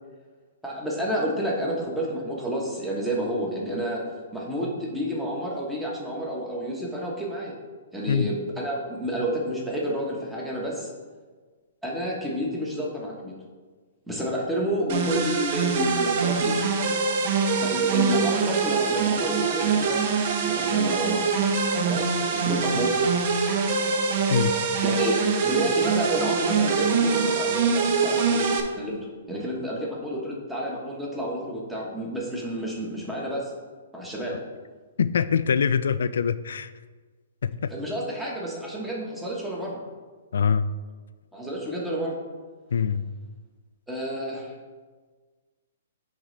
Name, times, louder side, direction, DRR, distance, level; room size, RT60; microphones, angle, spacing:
voice 1, 0.6-4.0 4.3-7.5 7.9-10.9 11.8-13.3 14.1-16.6 17.6-20.0 20.4-21.3 21.8-22.9 24.8-33.5 33.9-34.4 37.7-39.8 41.3-42.2 43.9-44.5, equal, 5° right, -4 dB, 1.2 m, -30 dB
sound 1, 14.9-28.6, right 5 dB, 45° right, 0.7 m, -24 dB
voice 2, 35.0-36.7 37.4-37.7 40.3-40.7 42.7-43.1, left 7 dB, 80° left, 14 dB, 0.3 m, -23 dB
10.0 x 3.8 x 3.2 m, 1.4 s
hypercardioid pair, 155°, 0 cm